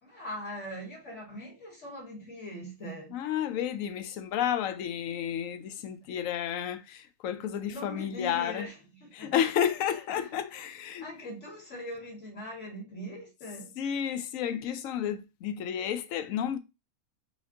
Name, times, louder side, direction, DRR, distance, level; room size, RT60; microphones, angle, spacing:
voice 1, 0.0-3.2 5.9-6.0 7.7-8.7 9.0-9.3 10.1-10.7 11.0-13.8, equal, 55° left, 2.3 m, -41 dB
voice 2, 3.1-8.7 9.1-11.0 13.8-16.6, left 9 dB, 70° left, 0.9 m, -31 dB
5.0 x 2.6 x 3.7 m
omnidirectional pair, 1.5 m